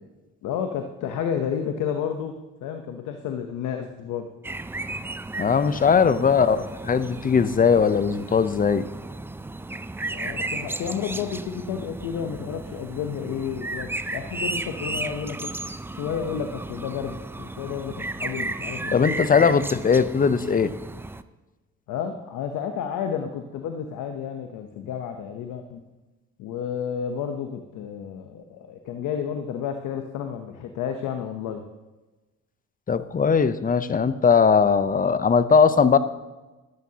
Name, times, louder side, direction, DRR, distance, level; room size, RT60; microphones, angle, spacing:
voice 1, 0.4-2.3 2.6-4.3 6.1-6.6 10.1-15.5 15.9-19.5 21.9-25.8 26.4-31.6, left 8 dB, 90° left, 6 dB, 0.9 m, -31 dB
sound 1, 4.4-21.2, right 2 dB, 10° right, 0.4 m, -34 dB
voice 2, 5.4-6.6 6.9-8.8 18.9-20.7 32.9-36.0, left 6 dB, 30° left, 13 dB, 0.6 m, -19 dB
13.0 x 12.5 x 2.8 m, 1.1 s
cardioid pair, 90°, 30 cm